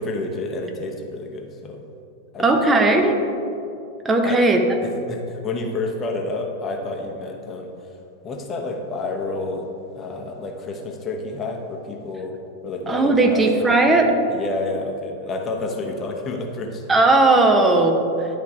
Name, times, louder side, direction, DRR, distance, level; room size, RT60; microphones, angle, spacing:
voice 1, 0.0-1.8 2.3-2.7 4.2-4.4 5.1-7.7 8.2-12.3 12.6-16.8, left 2 dB, 25° left, 2 dB, 0.9 m, -29 dB
voice 2, 2.4-3.2 4.0-4.6 12.9-14.1 16.9-18.3, right 2 dB, 15° right, 4 dB, 0.9 m, -17 dB
11.0 x 4.7 x 4.9 m, 2.7 s
figure-of-eight pair, 90°, 0 cm